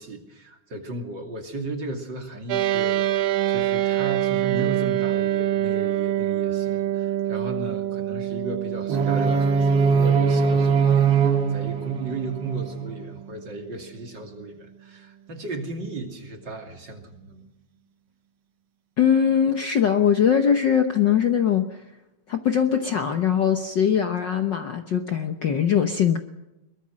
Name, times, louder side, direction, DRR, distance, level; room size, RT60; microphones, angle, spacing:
voice 1, 0.0-17.5, right 3 dB, 35° right, 3 dB, 3.0 m, -35 dB
sound 1, 2.5-14.0, right 12 dB, 90° right, 2.4 m, -27 dB
sound 2, 8.9-12.9, right 5 dB, 55° right, 2.4 m, -21 dB
voice 2, 19.0-21.8 22.3-26.2, left 8 dB, 65° left, 6 dB, 1.1 m, -21 dB
22.5 x 21.5 x 6.4 m, 0.95 s
omnidirectional pair, 3.5 m